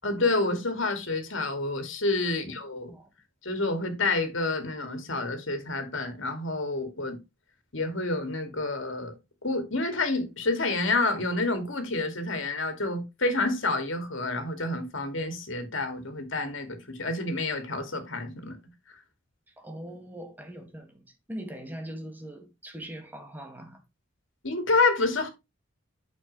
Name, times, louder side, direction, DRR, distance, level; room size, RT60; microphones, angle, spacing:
voice 1, 0.0-2.9 3.4-7.2 7.7-9.1 9.4-18.6 24.4-25.3, left 3 dB, 70° left, 2.4 m, -28 dB
voice 2, 19.5-23.8, right 1 dB, 10° right, 2.0 m, -41 dB
8.8 x 6.7 x 3.2 m
head